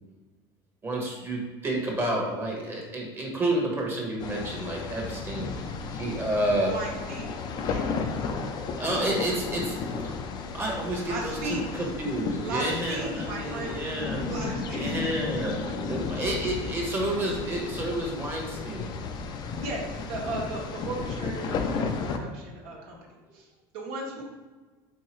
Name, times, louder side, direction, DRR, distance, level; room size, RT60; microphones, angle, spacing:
voice 1, 0.8-5.6 5.9-6.7 8.8-9.8 10.5-14.2 14.7-15.5 15.9-18.9, right 1 dB, 20° right, -1 dB, 1.1 m, -30 dB
sound 1, 4.2-22.2, left 4 dB, 40° left, 0.5 m, -34 dB
voice 2, 6.7-7.3 7.7-8.3 11.1-11.9 12.4-13.8 14.3-15.0 15.7-15.8 19.5-23.0 23.3-23.5 23.7-24.2, right 2 dB, 65° right, -2 dB, 1.4 m, -36 dB
4.6 x 3.7 x 3.1 m, 1.3 s
cardioid pair, 135°, 11 cm